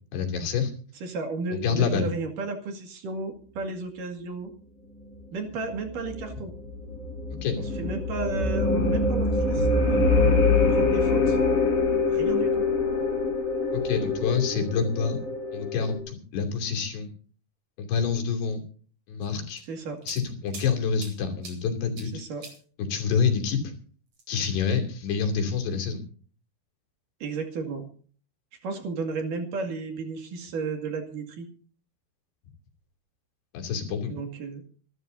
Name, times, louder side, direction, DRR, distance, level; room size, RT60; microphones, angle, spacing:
voice 1, 0.1-0.7 1.5-2.1 7.4-7.6 13.7-15.2 15.5-17.1 17.8-18.6 19.1-19.6 20.1-22.2 22.8-23.7 24.3-26.0 33.5-34.1, left 6 dB, 80° left, 2 dB, 5.0 m, -27 dB
voice 2, 1.0-4.5 5.3-6.5 7.8-10.0 10.6-11.4 12.1-12.5 19.7-20.0 22.1-22.4 27.2-27.8 28.6-31.5 34.1-34.6, right 3 dB, 55° right, 4 dB, 3.5 m, -33 dB
sound 1, 5.7-16.0, left 3 dB, 55° left, 5.0 m, -24 dB
sound 2, 19.2-20.7 21.0-21.6 22.0-22.1 22.4-22.6 24.1-24.6, right 4 dB, 40° right, 5.1 m, -43 dB
26.5 x 12.5 x 2.7 m, 0.43 s
omnidirectional pair, 4.7 m